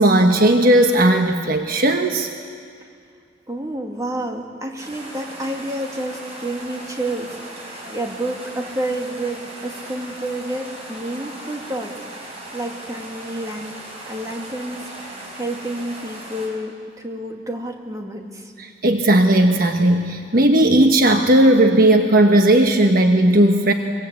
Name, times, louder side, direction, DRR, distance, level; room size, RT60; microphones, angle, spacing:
voice 1, 0.0-2.3 18.6-23.7, right 1 dB, 55° right, 4 dB, 1.2 m, -15 dB
voice 2, 3.5-13.8 14.1-18.5, right 1 dB, 20° right, 2 dB, 2.4 m, -29 dB
sound 1, 4.8-16.5, right 1 dB, 35° right, 6.5 m, -38 dB
24.0 x 22.5 x 8.4 m, 2.2 s
head